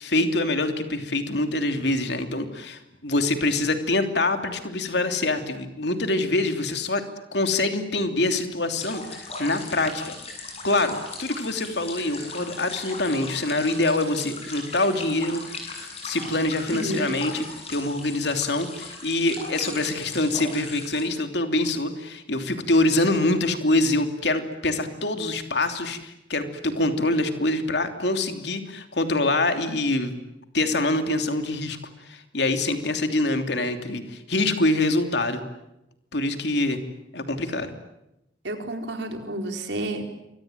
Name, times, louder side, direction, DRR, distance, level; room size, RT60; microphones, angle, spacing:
voice 1, 0.0-7.0 7.3-10.1 10.6-15.7 16.0-30.1 30.5-31.8 32.0-35.4 36.1-36.8 37.1-37.7, left 2 dB, 60° left, 7 dB, 3.0 m, -25 dB
Portugese Fountain, 8.8-21.0, left 3 dB, 30° left, 8.0 m, -38 dB
voice 2, 16.7-17.2 38.4-40.1, right 1 dB, 70° right, 5 dB, 4.3 m, -30 dB
27.5 x 23.5 x 9.2 m, 0.89 s
head